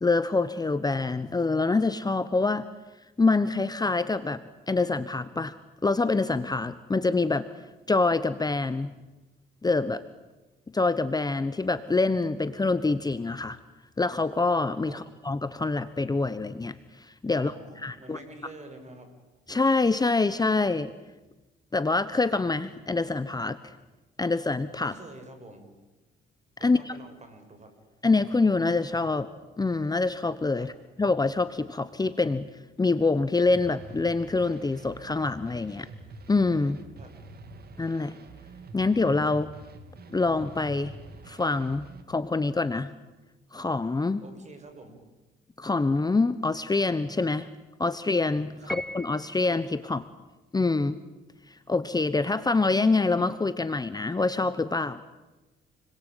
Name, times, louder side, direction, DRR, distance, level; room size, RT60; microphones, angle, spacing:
voice 1, 0.0-2.6 3.2-4.4 4.7-5.5 5.8-7.5 7.9-8.9 9.6-10.0 10.7-13.6 14.0-17.5 17.8-18.2 19.5-20.9 21.7-23.7 24.2-24.9 26.6-26.9 28.0-29.3 29.6-30.7 31.0-32.5 32.8-35.9 36.3-36.8 37.8-38.2 38.7-39.5 40.1-40.9 41.3-42.9 43.5-44.2 45.6-47.5 47.8-50.0 50.5-51.0 51.5-55.0, left 3 dB, 20° left, 13 dB, 1.1 m, -25 dB
voice 2, 17.3-19.1 24.8-25.7 26.6-27.7 30.6-30.7 37.0-37.1 44.2-45.0 48.6-48.8, right 2 dB, 35° right, 6 dB, 7.1 m, -47 dB
sound 1, 33.4-42.0, right 3 dB, 50° right, 3.2 m, -47 dB
Piano, 48.7-49.6, left 1 dB, ahead, 0.8 m, -38 dB
29.5 x 22.0 x 9.2 m, 1.1 s
cardioid pair, 90°, 20 cm